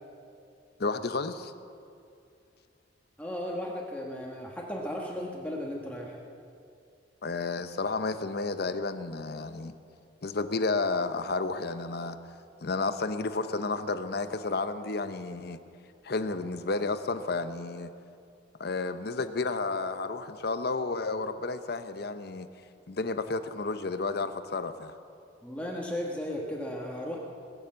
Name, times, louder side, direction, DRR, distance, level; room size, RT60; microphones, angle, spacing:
voice 1, 0.8-1.5 7.2-9.7 10.2-12.2 12.6-15.6 16.0-17.9 18.6-22.5 22.9-24.9, left 3 dB, 60° left, 11 dB, 0.7 m, -31 dB
voice 2, 3.2-6.2 25.4-27.2, left 1 dB, 5° left, -2 dB, 1.3 m, -35 dB
21.0 x 7.2 x 7.6 m, 2.4 s
head